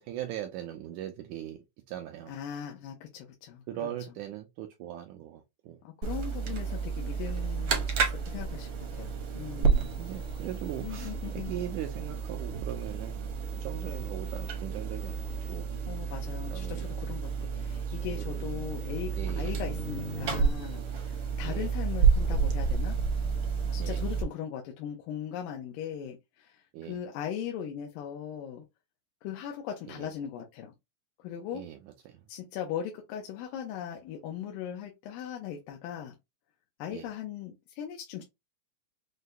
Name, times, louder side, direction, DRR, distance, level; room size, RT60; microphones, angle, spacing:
voice 1, 0.0-2.3 3.7-5.8 6.5-6.6 9.5-13.3 13.6-15.2 15.5-15.7 16.5-16.9 17.9-18.5 19.1-19.6 21.4-21.7 23.8-24.1 26.7-27.0 29.9-30.1 31.5-31.8 32.0-32.2 36.9-37.1, right 11 dB, 80° right, 1.7 m, -40 dB
voice 2, 2.3-3.9 5.8-9.9 10.8-11.5 15.9-19.1 19.4-23.0 23.7-28.6 29.2-30.7 31.2-31.7 32.3-36.2 36.8-38.2, left 9 dB, 90° left, 2.4 m, -39 dB
sound 1, 6.0-24.2, right 5 dB, 65° right, 1.3 m, -31 dB
6.5 x 2.2 x 2.6 m
omnidirectional pair, 3.9 m